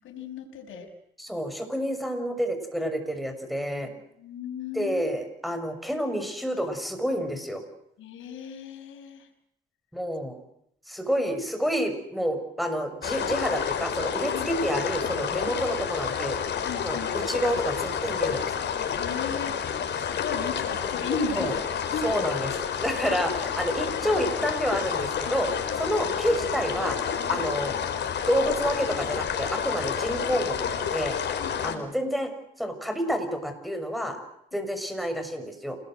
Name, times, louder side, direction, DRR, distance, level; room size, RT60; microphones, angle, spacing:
voice 1, 0.0-0.9 3.8-5.0 8.0-9.3 14.3-14.5 16.6-17.1 18.9-21.6 21.9-22.0 27.3-27.5 31.4-31.9, left 5 dB, 80° left, 5 dB, 5.8 m, -36 dB
voice 2, 1.2-3.9 4.7-7.6 9.9-10.4 10.9-16.4 16.8-18.5 21.4-21.5 22.0-22.5 22.8-25.5 25.8-27.0 27.3-27.8 28.3-31.2 31.6-32.3 32.6-34.2 34.5-35.8, equal, ahead, 8 dB, 6.6 m, -29 dB
sound 1, 13.0-31.7, left 7 dB, 60° left, 4.6 m, -29 dB
28.0 x 20.0 x 7.9 m, 0.76 s
cardioid pair, 90°, 20 cm